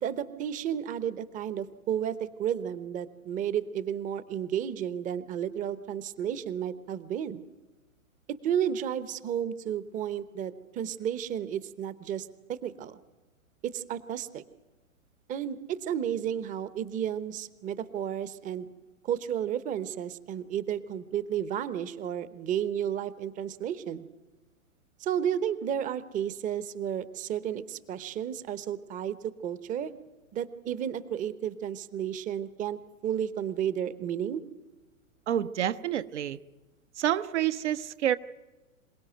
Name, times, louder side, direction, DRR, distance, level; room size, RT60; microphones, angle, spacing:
voice 1, 0.0-7.4 8.4-13.0 13.6-14.4 15.3-18.7 19.0-24.1 25.0-29.9 30.3-34.4, right 9 dB, 20° right, 16 dB, 0.9 m, -32 dB
voice 2, 35.3-36.4 37.0-38.2, right 11 dB, 55° right, 10 dB, 0.9 m, -28 dB
26.5 x 17.5 x 9.1 m, 1.1 s
figure-of-eight pair, 105°, 42 cm